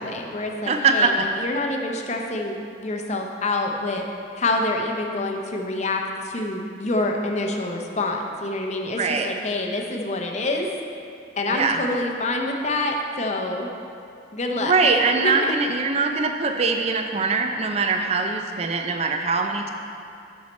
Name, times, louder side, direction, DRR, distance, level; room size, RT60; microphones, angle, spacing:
voice 1, 0.0-4.1 4.4-10.7 11.4-13.7 14.3-15.5, left 2 dB, 35° left, 2 dB, 0.6 m, -27 dB
voice 2, 0.7-1.3 9.0-9.3 11.5-11.8 14.5-19.7, right 4 dB, 35° right, 5 dB, 0.4 m, -22 dB
7.4 x 6.4 x 4.2 m, 2.5 s
head